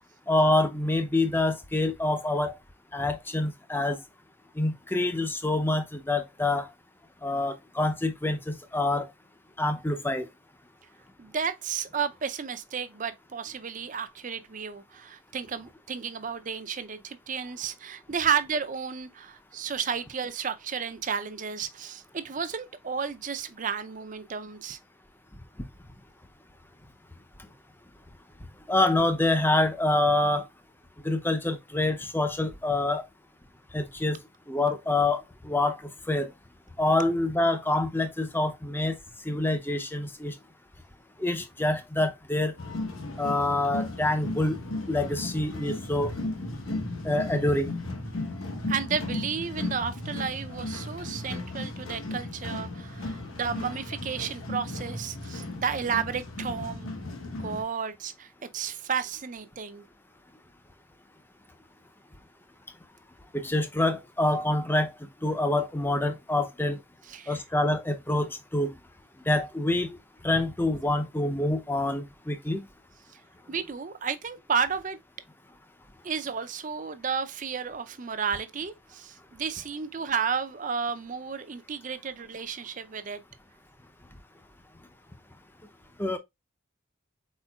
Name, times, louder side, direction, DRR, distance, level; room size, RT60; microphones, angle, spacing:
voice 1, 0.3-2.5 2.9-4.0 4.6-6.7 7.2-9.1 9.6-10.3 28.7-30.5 31.0-33.0 33.7-34.2 34.5-36.3 36.8-39.0 39.2-40.3 41.2-42.5 43.2-44.6 44.9-46.1 47.0-47.7 63.3-64.9 65.2-66.8 67.3-68.7 69.3-70.0 70.2-72.6 86.0-86.2, left 2 dB, 10° left, 0.5 m, -26 dB
voice 2, 11.2-24.8 48.7-57.0 57.4-59.8 67.1-67.4 73.5-75.0 76.0-83.2, right 6 dB, 35° right, 0.5 m, -32 dB
sound 1, 42.6-57.6, left 2 dB, 70° left, 1.0 m, -35 dB
4.5 x 4.4 x 2.3 m
head